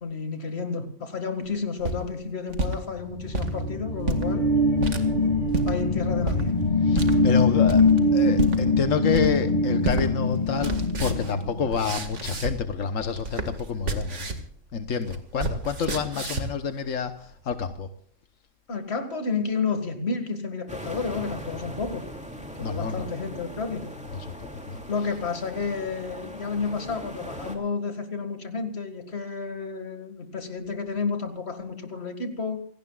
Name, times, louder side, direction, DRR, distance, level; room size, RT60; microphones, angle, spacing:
voice 1, 0.0-4.5 5.7-6.5 18.7-22.1 22.6-23.9 24.9-32.6, left 4 dB, 55° left, 7 dB, 2.3 m, -31 dB
sound 1, 1.6-2.8 3.2-3.5 4.0-4.3 4.8-5.0 5.5-5.7 6.3-6.4 6.9-7.1 7.7-8.0 8.4-8.6 9.1-9.5 9.8-10.0 10.3-12.7 13.0-14.5 14.8-16.6, right 2 dB, 70° right, 2.2 m, -30 dB
sound 2, 3.0-12.2, left 2 dB, 40° left, 2.5 m, -23 dB
voice 2, 6.8-7.8 8.1-14.3 14.7-17.9 22.6-23.1 24.1-24.8, left 6 dB, 85° left, 8 dB, 1.4 m, -28 dB
sound 3, 20.7-27.6, equal, 5° right, 2.7 m, -40 dB
28.0 x 17.5 x 2.4 m, 0.63 s
omnidirectional pair, 1.3 m